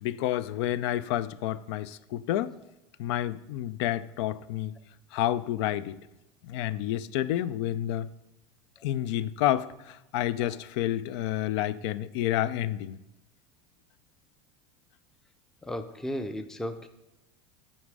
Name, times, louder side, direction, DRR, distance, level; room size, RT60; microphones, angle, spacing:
voice 1, 0.0-2.5 3.0-4.8 5.1-6.0 6.4-8.1 8.8-13.0, left 13 dB, 75° left, 0.4 m, -29 dB
voice 2, 15.6-16.9, equal, 5° left, 0.4 m, -34 dB
8.5 x 4.1 x 4.8 m
supercardioid pair, 125°, 14 cm